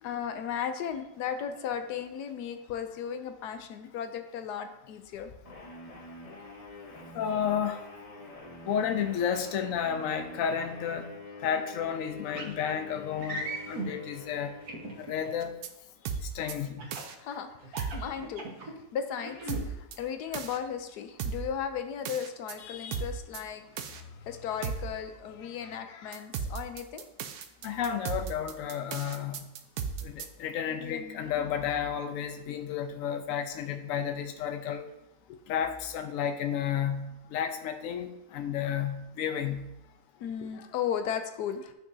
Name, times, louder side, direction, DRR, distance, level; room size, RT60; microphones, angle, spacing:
voice 1, 0.0-5.3 8.3-8.4 17.0-27.0 30.7-31.5 35.3-35.4 38.3-38.4 40.2-41.7, left 8 dB, 85° left, 8 dB, 1.2 m, -36 dB
sound 1, 5.4-15.7, left 2 dB, 25° left, 1.0 m, -46 dB
voice 2, 7.1-7.8 8.6-11.1 11.4-14.5 15.0-15.5 16.3-16.8 27.6-29.4 30.0-34.9 35.5-39.7, left 8 dB, 65° left, 7 dB, 1.0 m, -32 dB
sound 2, 12.3-12.5 13.2-13.9 14.7-15.3 16.8-17.1 17.6-18.7 19.2-19.6, right 2 dB, 65° right, 1.8 m, -37 dB
sound 3, 15.4-15.7 16.1-16.5 16.9-17.1 17.8-18.1 19.5-20.0 20.3-20.6 21.2-21.5 22.1-22.5 22.9-23.4 23.8-24.0 24.6-24.9 26.1-30.3, right 6 dB, 80° right, 1.2 m, -35 dB
8.9 x 6.0 x 2.7 m, 0.88 s
omnidirectional pair, 1.7 m